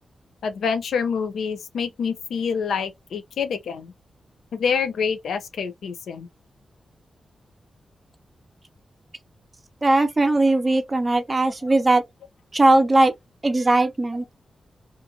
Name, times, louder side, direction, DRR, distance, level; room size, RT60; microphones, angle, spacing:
voice 1, 0.4-3.9 4.5-6.3, left 6 dB, 90° left, 0.5 m, -26 dB
voice 2, 9.8-12.0 12.5-13.1 13.4-14.2, right 2 dB, 30° right, 0.6 m, -19 dB
2.5 x 2.5 x 2.6 m
cardioid pair, 75°, 0 cm